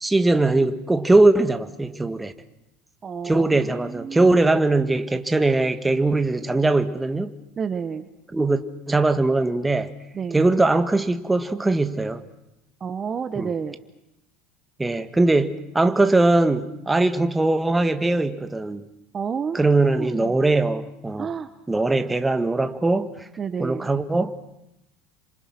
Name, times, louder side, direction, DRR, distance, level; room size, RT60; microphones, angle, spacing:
voice 1, 0.0-2.3 3.2-7.3 8.3-9.9 10.3-12.2 13.4-13.5 14.8-18.8 19.5-21.3 21.7-23.3 23.6-24.3, right 2 dB, 10° right, 1.7 m, -21 dB
voice 2, 3.0-4.3 7.6-8.1 10.1-10.4 12.8-13.8 19.1-19.6 20.0-20.3 21.2-21.5 23.4-23.9, right 6 dB, 30° right, 1.3 m, -30 dB
28.5 x 26.0 x 6.1 m
hypercardioid pair, 90°, 0 cm